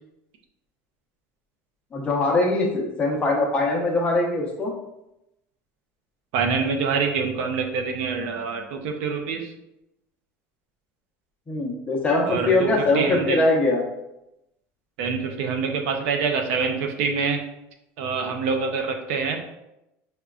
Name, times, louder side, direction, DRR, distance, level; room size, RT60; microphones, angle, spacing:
voice 1, 1.9-4.7 11.5-13.8, left 2 dB, 20° left, -1 dB, 0.6 m, -22 dB
voice 2, 6.3-9.5 12.3-13.4 15.0-17.4 18.0-19.4, right 5 dB, 75° right, 4 dB, 0.5 m, -26 dB
4.9 x 2.2 x 2.3 m, 0.89 s
cardioid pair, 165°, 7 cm